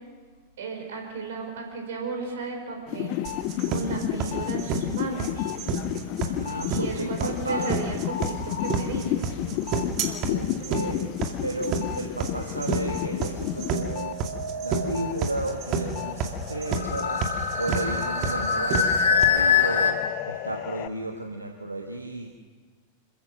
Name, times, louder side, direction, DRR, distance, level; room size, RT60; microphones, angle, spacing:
voice 1, 0.6-3.2 3.7-5.5 6.7-9.4, right 3 dB, 60° right, 3 dB, 5.2 m, -34 dB
sound 1, 2.9-14.2 14.5-20.9, left 12 dB, 45° left, 0.8 m, -33 dB
sound 2, 3.2-19.2, right 5 dB, 40° right, 2.4 m, -30 dB
voice 2, 6.2-7.7 10.3-11.2 11.4-14.2 14.6-22.3, right 2 dB, 85° right, 3 dB, 1.3 m, -33 dB
sound 3, 8.1-8.7 13.1-15.1 16.7-19.9, left 6 dB, 65° left, 2.2 m, -26 dB
27.0 x 15.0 x 6.5 m, 1.5 s
figure-of-eight pair, 90°, 0 cm